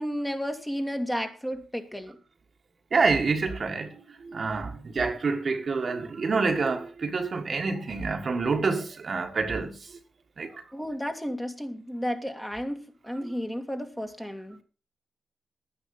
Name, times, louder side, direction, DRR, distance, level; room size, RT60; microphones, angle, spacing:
voice 1, 0.0-2.1 10.7-14.6, equal, 10° left, 2.1 m, -32 dB
voice 2, 2.9-9.9 10.4-10.6 13.2-13.3, right 4 dB, 55° right, 1.7 m, -27 dB
10.5 x 9.9 x 5.4 m
cardioid pair, 65°, 0 cm